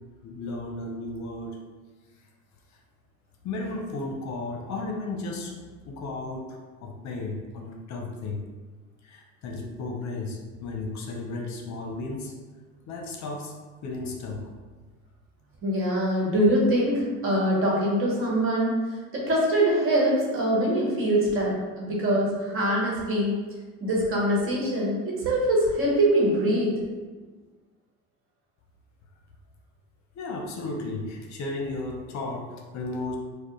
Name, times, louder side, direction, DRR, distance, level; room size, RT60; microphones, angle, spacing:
voice 1, 0.2-1.6 3.4-5.5 5.8-8.4 9.0-12.3 12.9-13.5 13.8-14.5 30.1-33.2, left 2 dB, 55° left, 0 dB, 0.7 m, -34 dB
voice 2, 15.6-18.7 19.1-23.3 23.8-26.8, right 1 dB, 40° right, -4 dB, 1.2 m, -23 dB
4.7 x 2.1 x 3.1 m, 1.4 s
cardioid pair, 125°, 34 cm